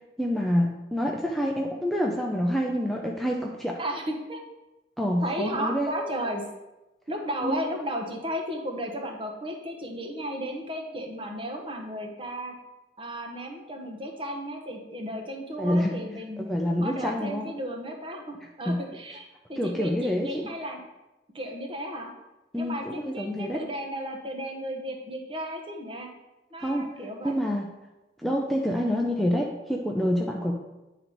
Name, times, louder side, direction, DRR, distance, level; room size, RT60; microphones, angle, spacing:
voice 1, 0.2-3.8 5.0-5.9 7.4-7.6 15.6-16.0 16.4-17.5 18.7-18.8 19.6-20.4 22.5-23.6 26.6-26.9 27.2-27.7 28.2-30.5, equal, ahead, -1 dB, 0.5 m, -27 dB
voice 2, 3.8-4.4 5.2-6.4 7.1-12.5 13.0-16.5 16.8-20.8 21.3-22.1 22.6-26.1 26.5-27.3, equal, 30° right, 2 dB, 1.0 m, -34 dB
9.5 x 4.0 x 4.5 m, 1.0 s
head